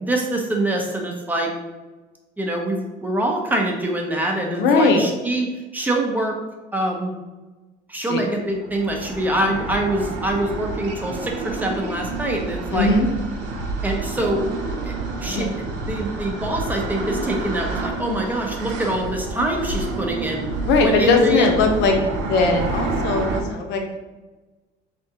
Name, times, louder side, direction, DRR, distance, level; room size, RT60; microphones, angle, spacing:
voice 1, 0.0-1.5 2.4-6.4 6.7-7.1 7.9-12.9 13.8-14.5 14.8-14.9 15.2-15.5 15.9-20.4 20.8-21.5, right 1 dB, 10° right, 1 dB, 0.6 m, -24 dB
voice 2, 4.5-5.0 8.1-8.2 12.7-13.1 15.3-15.4 20.7-22.0 22.3-24.0, left 3 dB, 65° left, 3 dB, 0.8 m, -19 dB
sound 1, 8.5-23.4, right 3 dB, 90° right, 0.8 m, -29 dB
4.7 x 3.4 x 2.8 m, 1.2 s
cardioid pair, 155°, 19 cm